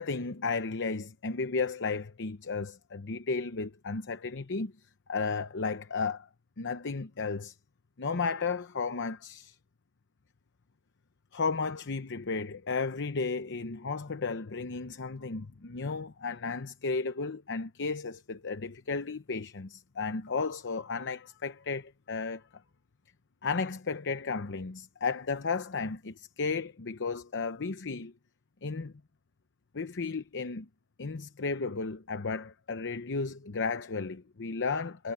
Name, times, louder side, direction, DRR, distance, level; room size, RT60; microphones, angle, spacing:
voice 1, 0.0-4.7 5.1-6.3 6.6-7.5 8.0-9.6 11.3-22.4 23.4-28.1 28.6-28.9 29.7-30.7 31.0-35.1, left 4 dB, 55° left, 0.8 m, -34 dB
head